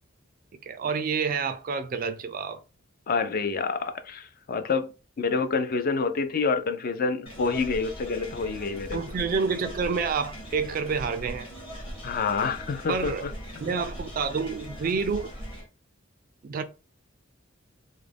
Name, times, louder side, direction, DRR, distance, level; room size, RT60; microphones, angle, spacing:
voice 1, 0.7-2.6 8.9-11.5 12.9-13.3 13.6-15.3 16.4-16.6, right 5 dB, 45° right, 0.3 m, -28 dB
voice 2, 3.1-9.0 12.0-13.3, left 4 dB, 45° left, 0.4 m, -28 dB
sound 1, 7.3-15.7, equal, 25° left, 0.9 m, -40 dB
2.4 x 2.0 x 3.3 m
head